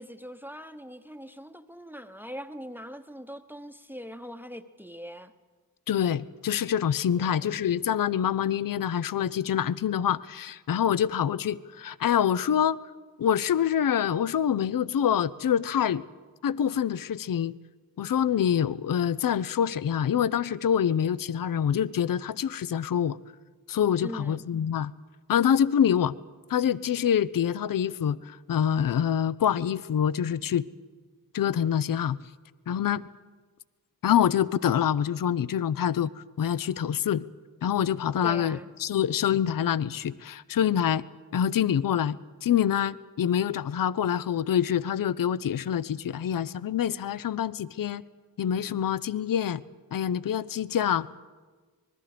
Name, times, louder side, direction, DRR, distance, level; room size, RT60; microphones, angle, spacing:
voice 1, 0.0-5.3 7.2-7.5 24.0-24.4 38.2-38.7, equal, 5° right, 9 dB, 0.9 m, -41 dB
voice 2, 5.9-12.8 13.2-16.0 16.4-17.5 18.0-23.2 23.7-24.9 25.3-26.1 26.5-30.6 31.3-32.2 32.7-33.0 34.0-37.2 37.6-41.0 41.3-48.0 48.4-49.6 49.9-51.1, left 9 dB, 65° left, 18 dB, 0.6 m, -26 dB
26.0 x 20.5 x 5.0 m, 1.4 s
cardioid pair, 60°, 37 cm